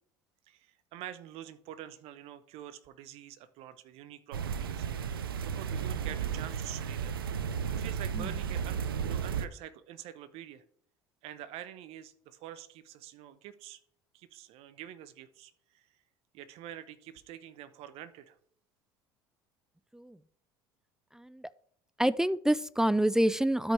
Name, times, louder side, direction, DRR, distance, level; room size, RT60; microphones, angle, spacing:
voice 1, 0.5-7.2 7.8-10.6 11.2-13.8 14.1-15.9 16.3-18.4, right 11 dB, 60° right, 14 dB, 0.8 m, -47 dB
sound 1, 4.3-9.5, right 7 dB, 90° right, 0.4 m, -34 dB
voice 2, 21.1-21.5 22.0-23.7, right 1 dB, 5° right, 18 dB, 0.3 m, -27 dB
13.0 x 5.1 x 3.4 m, 0.65 s
hypercardioid pair, 70°, 12 cm